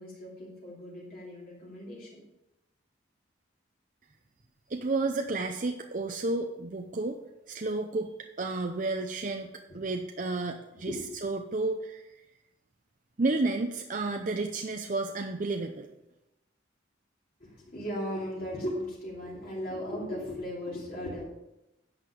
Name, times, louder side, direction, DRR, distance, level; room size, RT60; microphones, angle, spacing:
voice 1, 0.0-2.2 9.7-9.8 10.8-11.1 17.4-21.2, equal, 50° left, -5 dB, 2.7 m, -37 dB
voice 2, 4.7-7.2 7.5-8.1 8.4-9.5 9.7-10.9 11.2-12.0 13.2-15.9, right 3 dB, 45° right, 4 dB, 0.6 m, -31 dB
10.5 x 6.7 x 5.2 m, 0.92 s
head